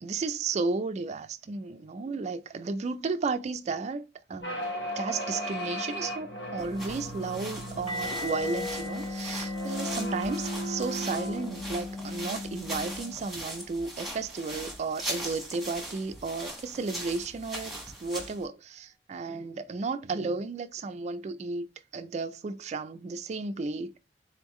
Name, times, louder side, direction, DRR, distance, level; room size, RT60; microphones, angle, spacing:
voice 1, 0.0-4.6 5.0-21.7 21.9-24.0, right 4 dB, 40° right, 0.3 m, -33 dB
sound 1, 4.4-13.2, left 1 dB, 85° left, 0.8 m, -35 dB
sound 2, 6.6-18.4, right 1 dB, ahead, 1.3 m, -40 dB
sound 3, 7.9-13.6 13.9-14.2 14.5-14.7 17.9-18.0, left 1 dB, 35° left, 1.5 m, -43 dB
3.9 x 3.6 x 3.0 m
head